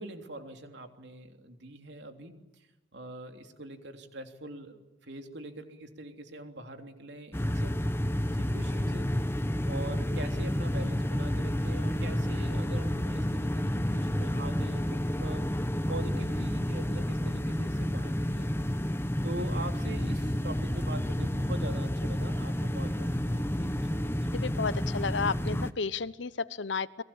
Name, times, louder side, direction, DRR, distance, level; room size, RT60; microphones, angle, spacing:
voice 1, 0.0-2.7 2.9-7.8 8.3-9.1 9.7-15.4 15.9-18.6 19.2-24.1, right 1 dB, 60° right, 5 dB, 3.4 m, -43 dB
sound 1, 7.3-25.7, equal, 10° left, 0.9 m, -30 dB
voice 2, 24.3-27.0, left 4 dB, 70° left, 17 dB, 0.9 m, -32 dB
30.0 x 22.5 x 8.9 m, 1.1 s
head